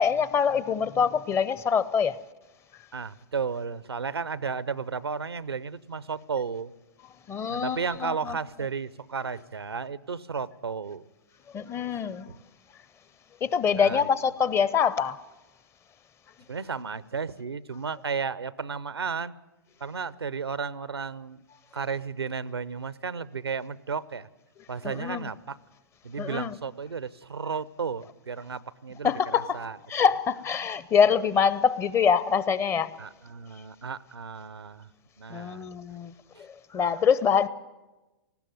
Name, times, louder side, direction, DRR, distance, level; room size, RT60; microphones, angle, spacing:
voice 1, 0.0-2.2 7.3-8.4 11.5-12.3 13.4-15.2 24.8-25.3 26.2-26.5 29.0-29.6 29.9-32.9 35.3-36.1 36.4-37.5, left 7 dB, 20° left, 0.6 m, -25 dB
voice 2, 2.9-6.7 7.5-11.0 13.8-14.1 16.5-19.3 19.8-21.4 21.7-24.3 24.7-25.6 26.0-29.8 33.0-34.9 35.2-35.7 36.3-36.4, right 5 dB, 90° right, 0.7 m, -33 dB
19.0 x 15.0 x 9.4 m
hypercardioid pair, 115°, 13 cm